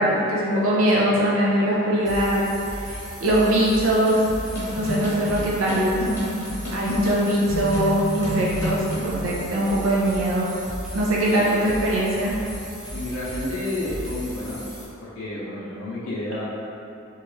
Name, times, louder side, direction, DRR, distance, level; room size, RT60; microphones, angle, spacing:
voice 1, 0.0-4.2 4.8-6.0 6.7-10.5 10.9-12.3, right 1 dB, 65° right, -5 dB, 0.5 m, -22 dB
sound 1, 2.0-14.8, equal, 5° right, 0.5 m, -36 dB
sound 2, 4.1-9.1, equal, 15° left, 0.9 m, -29 dB
voice 2, 11.2-11.5 12.9-14.6 15.0-16.5, left 1 dB, 70° left, -9 dB, 0.6 m, -30 dB
3.0 x 2.3 x 3.1 m, 2.7 s
head